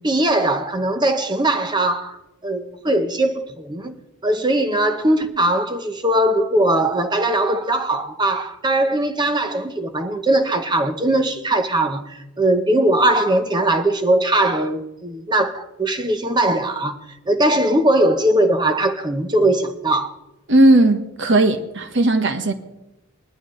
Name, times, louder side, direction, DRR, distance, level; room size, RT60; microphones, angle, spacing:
voice 1, 0.0-2.2 2.4-4.0 4.2-17.0 17.3-20.1, right 1 dB, 20° right, 0.8 m, -20 dB
voice 2, 20.5-22.5, right 2 dB, 55° right, 1.2 m, -16 dB
20.0 x 11.5 x 3.2 m
head